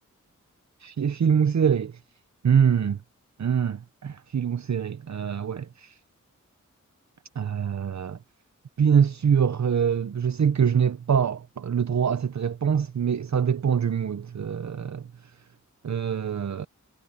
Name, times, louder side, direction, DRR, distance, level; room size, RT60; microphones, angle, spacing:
voice 1, 0.8-2.0 2.4-3.0 3.4-5.9 7.4-8.2 8.8-15.1 15.8-16.7, right 7 dB, 60° right, 0.8 m, -24 dB
wide cardioid pair, 60°, 31 cm